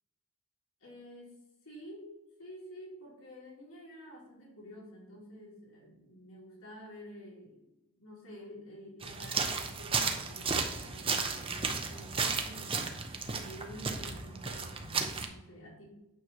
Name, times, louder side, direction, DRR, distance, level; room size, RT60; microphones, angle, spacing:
voice 1, 0.8-1.4 1.6-7.7 7.9-12.9 13.2-16.0, equal, 80° left, -4 dB, 2.9 m, -50 dB
sound 1, 9.0-15.3, right 5 dB, 25° right, 0.6 m, -34 dB
9.0 x 3.2 x 6.0 m, 0.97 s
head